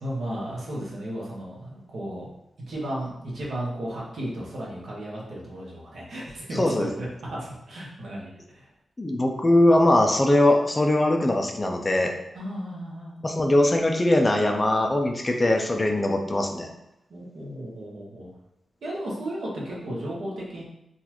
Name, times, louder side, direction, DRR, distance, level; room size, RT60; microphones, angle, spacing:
voice 1, 0.0-2.3 2.7-8.7 12.3-13.1 17.1-18.3 18.8-20.6, right 1 dB, 70° right, -5 dB, 1.1 m, -34 dB
voice 2, 6.6-6.9 9.0-12.1 13.2-16.7, left 1 dB, 20° left, 3 dB, 0.4 m, -21 dB
3.9 x 2.4 x 2.9 m, 0.87 s
wide cardioid pair, 120°, 0 cm